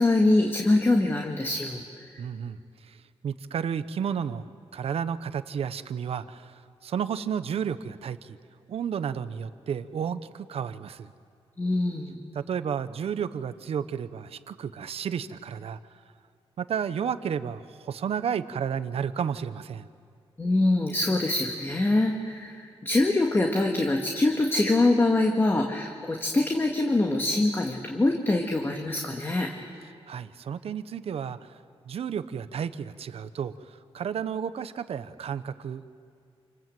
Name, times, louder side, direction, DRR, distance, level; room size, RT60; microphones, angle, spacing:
voice 1, 0.0-1.8 11.6-12.1 20.4-29.5, left 2 dB, 20° left, 1 dB, 1.9 m, -24 dB
voice 2, 2.2-3.0 3.2-4.4 4.7-8.4 8.7-11.1 12.3-15.8 16.6-19.9 30.1-31.4 31.8-35.9, right 7 dB, 70° right, 12 dB, 1.0 m, -32 dB
28.0 x 27.0 x 7.8 m, 2.2 s
wide cardioid pair, 155°, 10 cm